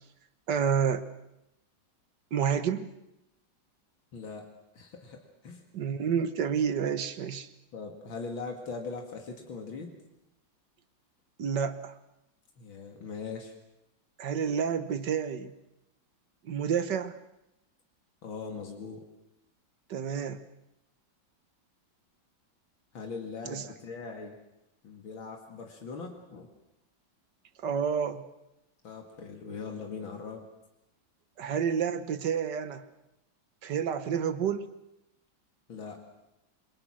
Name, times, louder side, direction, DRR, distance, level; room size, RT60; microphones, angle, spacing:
voice 1, 0.5-1.0 2.3-2.9 5.7-7.5 11.4-11.9 14.2-15.5 16.5-17.2 19.9-20.4 23.5-23.6 27.6-28.3 31.4-32.8 33.6-34.7, right 7 dB, 65° right, 11 dB, 1.8 m, -29 dB
voice 2, 4.1-4.4 4.7-5.6 7.7-10.0 12.6-13.5 18.2-19.0 22.9-24.3 24.8-26.5 28.8-30.4 35.7-36.0, left 4 dB, 85° left, 2 dB, 3.0 m, -40 dB
28.0 x 22.5 x 6.3 m, 0.88 s
omnidirectional pair, 2.1 m